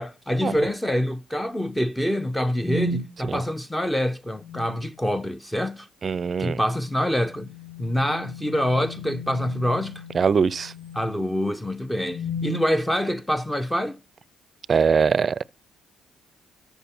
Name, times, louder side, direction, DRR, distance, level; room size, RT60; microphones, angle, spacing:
voice 1, 0.0-5.9 6.4-7.5 7.8-10.0 10.9-14.0, equal, 10° left, 0.7 m, -26 dB
sound 1, 2.6-3.0 4.4-4.9 7.1-11.3 12.0-12.6, left 1 dB, 25° left, 3.6 m, -35 dB
voice 2, 6.0-6.6 10.1-10.7 14.7-15.4, right 6 dB, 45° right, 0.4 m, -22 dB
13.0 x 5.7 x 4.4 m
supercardioid pair, 75°, 0 cm